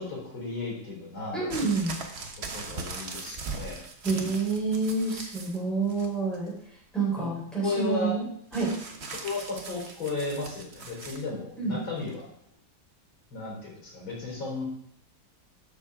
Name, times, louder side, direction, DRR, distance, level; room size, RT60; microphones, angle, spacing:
voice 1, 0.0-1.5 2.5-3.8 7.2-7.3 7.6-8.1 9.2-12.3 13.3-14.6, left 3 dB, 80° left, -4 dB, 4.6 m, -34 dB
voice 2, 1.3-2.0 4.0-6.5 6.9-8.2 8.5-8.7 11.6-11.8, right 4 dB, ahead, -6 dB, 3.8 m, -28 dB
sound 1, 1.5-5.6 5.9-6.5 8.5-11.2 12.1-12.2, right 4 dB, 40° right, 1.1 m, -40 dB
12.0 x 6.6 x 3.6 m, 0.68 s
omnidirectional pair, 2.1 m